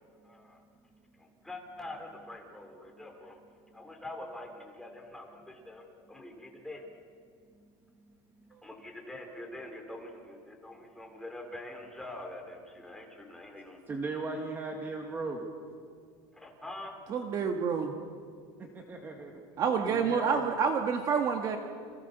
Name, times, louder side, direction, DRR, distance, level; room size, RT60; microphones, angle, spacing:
voice 1, 0.2-0.6 1.2-3.4 3.7-6.9 8.6-13.8 16.3-17.0, left 1 dB, 5° left, 1 dB, 4.0 m, -45 dB
voice 2, 13.9-15.5 18.6-19.3 19.8-20.5, right 3 dB, 20° right, 2 dB, 2.3 m, -38 dB
voice 3, 17.1-17.9 19.6-21.6, right 6 dB, 35° right, 4 dB, 1.7 m, -28 dB
29.5 x 27.0 x 6.9 m, 2.2 s
cardioid pair, 165°, 11 cm